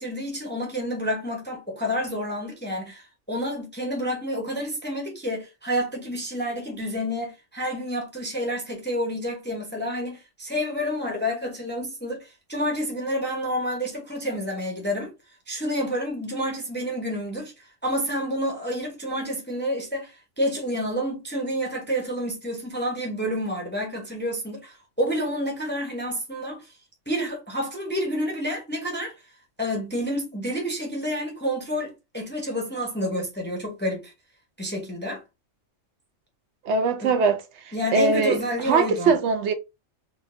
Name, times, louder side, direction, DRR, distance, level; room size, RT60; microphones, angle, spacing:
voice 1, 0.0-15.1 15.5-17.5 17.8-26.7 27.1-29.1 29.6-34.1 34.6-35.2 37.0-37.1 37.7-39.1, equal, 10° left, 0.6 m, -29 dB
voice 2, 36.6-38.4 38.7-39.5, right 4 dB, 70° right, 0.8 m, -22 dB
4.4 x 2.2 x 2.4 m
omnidirectional pair, 1.3 m